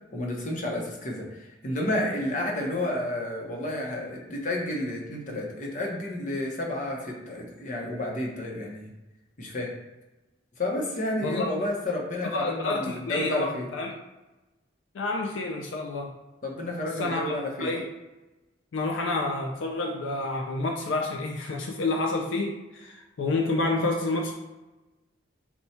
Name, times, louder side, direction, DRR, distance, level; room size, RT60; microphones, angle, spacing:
voice 1, 0.1-8.9 9.4-9.7 10.6-13.7 16.4-17.7, left 1 dB, 40° left, -1 dB, 0.8 m, -31 dB
voice 2, 12.3-13.9 14.9-16.1 17.0-17.9 18.7-24.3, left 2 dB, 80° left, 2 dB, 0.4 m, -29 dB
4.3 x 2.3 x 4.1 m, 1.1 s
head